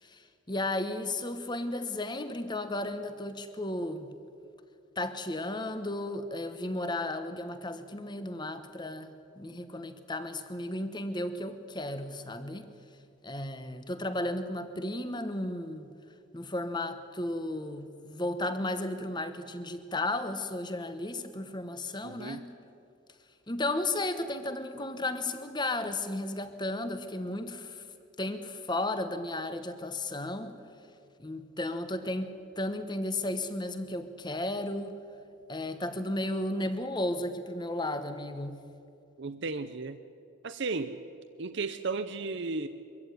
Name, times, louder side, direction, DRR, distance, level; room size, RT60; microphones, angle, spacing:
voice 1, 0.0-4.1 5.0-12.7 13.2-15.9 16.3-22.5 23.5-27.9 28.2-30.5 31.2-35.0 35.5-38.6, left 1 dB, 20° left, 10 dB, 1.2 m, -34 dB
voice 2, 22.0-22.4 39.2-40.0 40.4-41.0 41.4-42.7, right 3 dB, 55° right, 10 dB, 0.7 m, -34 dB
23.5 x 14.5 x 9.5 m, 2.5 s
head